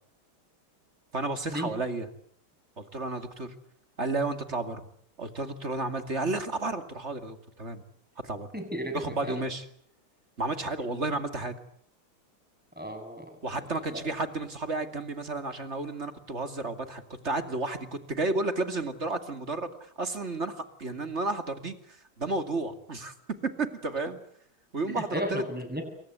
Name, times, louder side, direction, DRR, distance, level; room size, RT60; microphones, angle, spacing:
voice 1, 1.1-2.1 2.8-3.5 4.0-4.8 5.2-7.8 8.2-8.5 8.9-9.6 10.4-11.5 13.4-23.1 23.4-24.2 24.7-25.4, right 2 dB, 30° right, 8 dB, 2.6 m, -32 dB
voice 2, 8.5-9.4 10.9-11.0 12.8-13.3 13.9-14.0 24.9-25.8, equal, 5° right, 5 dB, 7.7 m, -34 dB
28.5 x 23.0 x 8.2 m, 0.66 s
omnidirectional pair, 2.3 m